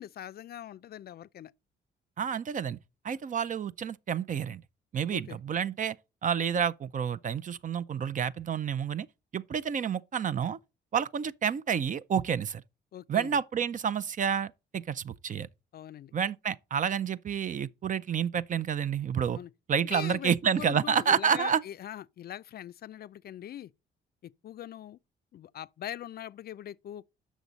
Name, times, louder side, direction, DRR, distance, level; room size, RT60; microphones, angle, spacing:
voice 1, 0.0-1.5 5.1-5.4 12.9-13.4 15.7-16.1 19.3-19.5 19.8-23.7 24.2-25.0 25.3-27.1, left 11 dB, 55° left, 0.4 m, -42 dB
voice 2, 2.2-2.8 3.0-4.6 4.9-6.0 6.2-9.1 9.3-10.6 10.9-12.6 13.1-15.5 16.1-19.4 19.7-21.6, right 7 dB, 40° right, 0.5 m, -29 dB
8.0 x 6.2 x 4.0 m
cardioid pair, 90°, 20 cm